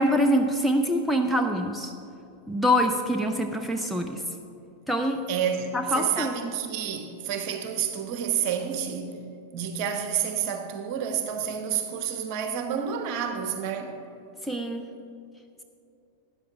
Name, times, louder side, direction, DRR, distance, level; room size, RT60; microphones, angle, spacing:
voice 1, 0.0-1.9 2.5-4.2 4.9-5.2 5.7-6.4 14.4-14.9, equal, ahead, 0.6 m, -25 dB
voice 2, 5.3-9.1 9.5-13.9, right 8 dB, 45° right, 1.1 m, -29 dB
12.5 x 9.9 x 3.5 m
figure-of-eight pair, 90°, 0 cm